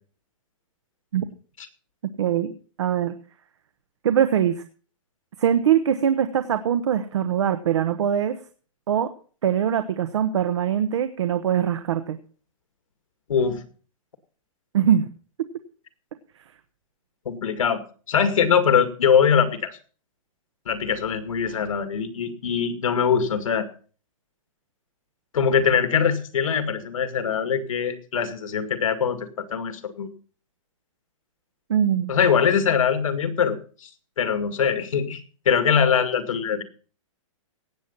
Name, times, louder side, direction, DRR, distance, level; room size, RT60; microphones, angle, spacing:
voice 1, 2.2-2.5 2.8-3.1 4.0-4.6 5.4-8.4 8.9-9.1 9.4-12.2 14.7-15.1 31.7-32.1, right 9 dB, 60° right, 9 dB, 1.1 m, -22 dB
voice 2, 13.3-13.6 17.3-19.8 20.7-23.7 25.3-30.1 32.1-33.6 34.2-36.6, left 7 dB, 80° left, 9 dB, 2.2 m, -22 dB
17.5 x 7.7 x 5.6 m, 0.41 s
hypercardioid pair, 175°, 17 cm